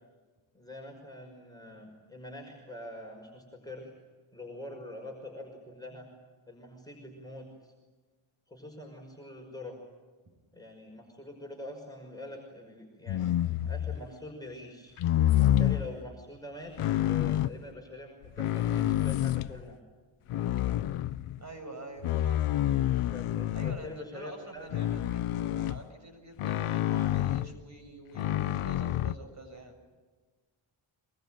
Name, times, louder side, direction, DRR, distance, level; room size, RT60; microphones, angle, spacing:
voice 1, 0.5-3.9 4.3-6.1 6.5-7.7 8.5-9.8 10.5-14.9 15.4-19.8 23.1-24.9, left 1 dB, 10° left, 0 dB, 5.7 m, -45 dB
sound 1, 13.1-14.1 15.0-15.9 16.8-17.6 18.2-19.6 20.3-21.4 22.0-23.9 24.7-25.8 26.4-27.5 28.1-29.1, left 12 dB, 90° left, 0.8 m, -28 dB
voice 2, 21.4-22.5 23.5-29.7, right 2 dB, 35° right, 5 dB, 7.1 m, -46 dB
25.0 x 22.5 x 9.1 m, 1.4 s
cardioid pair, 90°, 49 cm